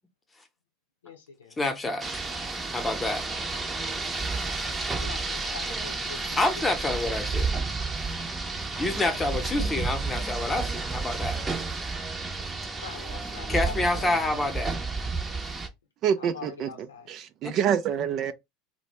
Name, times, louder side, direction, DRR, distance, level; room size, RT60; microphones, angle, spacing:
voice 1, 1.0-1.6 4.9-6.7 12.4-14.6 16.2-17.1, left 5 dB, 85° left, 0.6 m, -43 dB
voice 2, 1.6-2.1 2.7-3.3 4.3-4.4 6.4-7.6 8.8-11.4 12.1-12.2 13.5-14.7 17.4-17.5, left 2 dB, 15° left, 0.8 m, -28 dB
Rain, 2.0-15.7, right 3 dB, 20° right, 0.7 m, -31 dB
voice 3, 16.0-18.3, right 8 dB, 50° right, 0.4 m, -27 dB
2.5 x 2.1 x 3.0 m
hypercardioid pair, 80°, 0 cm